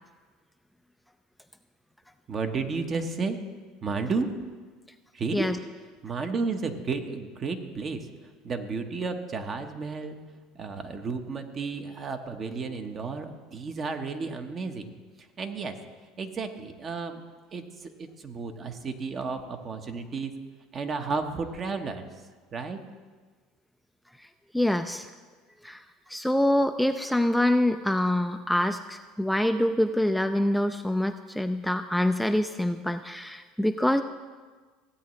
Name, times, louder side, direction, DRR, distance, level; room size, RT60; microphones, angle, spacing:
voice 1, 2.3-3.4 3.8-4.3 5.1-5.5 6.0-8.1 8.4-10.2 10.5-14.9 15.4-15.8 16.2-17.2 17.5-20.3 20.7-22.0 22.5-22.8, right 4 dB, 40° right, 6 dB, 1.0 m, -32 dB
voice 2, 24.5-25.1 25.6-34.0, left 1 dB, ahead, 7 dB, 0.4 m, -25 dB
15.5 x 8.4 x 3.1 m, 1.4 s
supercardioid pair, 90°, 0 cm